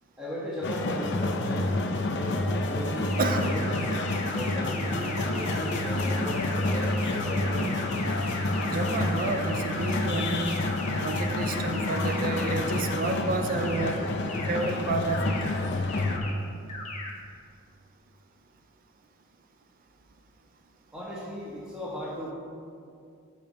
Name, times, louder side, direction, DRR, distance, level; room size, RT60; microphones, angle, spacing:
voice 1, 0.2-3.7 4.3-7.7 20.9-22.3, equal, 10° right, -9 dB, 1.2 m, -37 dB
sound 1, 0.6-16.2, left 2 dB, 55° left, 0.6 m, -29 dB
sound 2, 3.1-13.1 13.5-13.9 14.3-14.7 15.1-15.5 15.9-16.3 16.7-17.1, left 3 dB, 35° left, 1.0 m, -38 dB
voice 2, 8.6-10.7 11.0-14.1 14.5-15.4, right 3 dB, 45° right, 6 dB, 0.5 m, -30 dB
7.2 x 4.4 x 5.2 m, 2.4 s
head